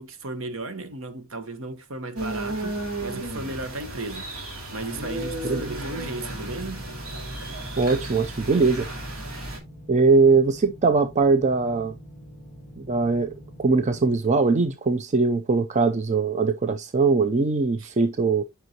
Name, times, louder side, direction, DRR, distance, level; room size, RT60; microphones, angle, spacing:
voice 1, 0.0-6.9 17.8-18.0, right 2 dB, 65° right, 1.1 m, -35 dB
sound 1, 2.2-9.6, right 1 dB, 85° right, 2.5 m, -34 dB
sound 2, 4.9-14.2, equal, ahead, 2.3 m, -45 dB
voice 2, 7.8-8.9 9.9-11.9 12.8-13.3 13.6-18.4, right 4 dB, 35° right, 0.5 m, -21 dB
7.9 x 5.5 x 2.9 m
head